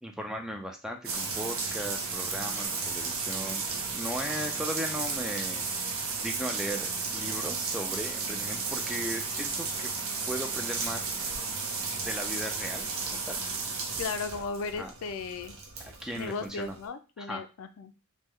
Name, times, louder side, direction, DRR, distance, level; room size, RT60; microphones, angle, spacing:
voice 1, 0.0-3.7 3.9-5.9 6.2-9.9 10.3-11.0 12.0-13.4 14.8-14.9 15.8-16.7 17.2-17.4, equal, 5° right, 3 dB, 0.3 m, -37 dB
sound 1, 1.0-16.9, right 4 dB, 70° right, 0.7 m, -34 dB
voice 2, 14.0-15.6 16.1-17.9, left 4 dB, 70° left, 9 dB, 0.4 m, -36 dB
3.5 x 2.1 x 3.1 m, 0.31 s
head